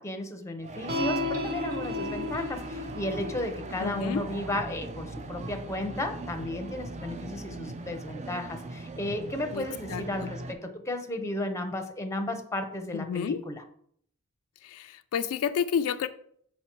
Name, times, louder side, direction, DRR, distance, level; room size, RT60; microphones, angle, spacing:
voice 1, 0.0-13.6, left 1 dB, 15° left, 6 dB, 0.7 m, -34 dB
sound 1, 0.6-10.5, right 2 dB, 30° right, 0.5 m, -40 dB
sound 2, 0.9-7.5, left 2 dB, 50° right, 1.0 m, -36 dB
voice 2, 3.8-4.2 9.5-9.6 9.9-10.3 12.9-13.4 14.6-16.1, left 7 dB, 75° left, 10 dB, 0.4 m, -30 dB
5.7 x 4.3 x 4.5 m, 0.65 s
head